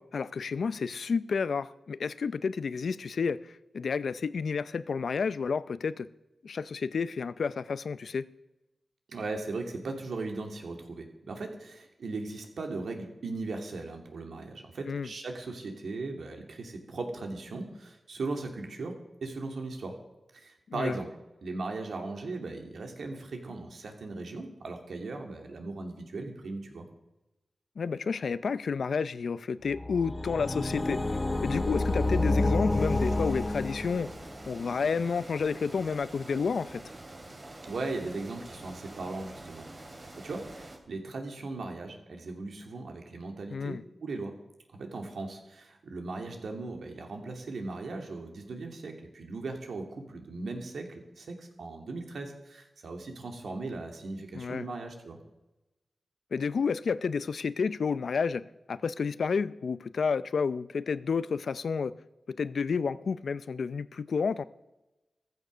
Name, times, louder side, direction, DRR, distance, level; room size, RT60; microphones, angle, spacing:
voice 1, 0.0-6.1 6.4-8.3 14.9-15.1 20.7-21.0 27.8-34.1 34.5-36.8 43.5-43.8 54.3-54.7 56.3-61.9 62.3-64.4, left 5 dB, 80° left, 0.6 m, -30 dB
voice 2, 9.1-18.9 19.2-20.0 20.3-21.1 21.4-26.9 37.6-44.3 44.7-55.2, right 3 dB, 85° right, 2.7 m, -38 dB
sound 1, 29.7-34.4, left 2 dB, 25° left, 1.0 m, -29 dB
sound 2, 32.7-40.8, right 2 dB, 40° right, 3.3 m, -46 dB
15.0 x 14.0 x 6.3 m
wide cardioid pair, 90°, 0 cm